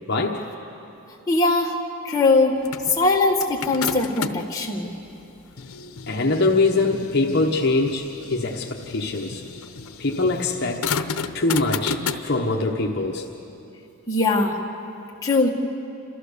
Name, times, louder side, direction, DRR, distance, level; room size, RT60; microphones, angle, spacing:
voice 1, 0.1-0.4 6.1-9.4 10.0-10.9 11.3-13.2, left 3 dB, 50° left, 0 dB, 1.0 m, -23 dB
voice 2, 1.3-1.7 2.0-2.6 2.9-5.0 14.1-14.6 15.2-15.5, left 3 dB, 15° left, -3 dB, 1.8 m, -20 dB
sound 1, 2.6-4.6 5.2-12.2, left 5 dB, 85° left, 0.8 m, -32 dB
28.0 x 14.5 x 6.7 m, 2.9 s
head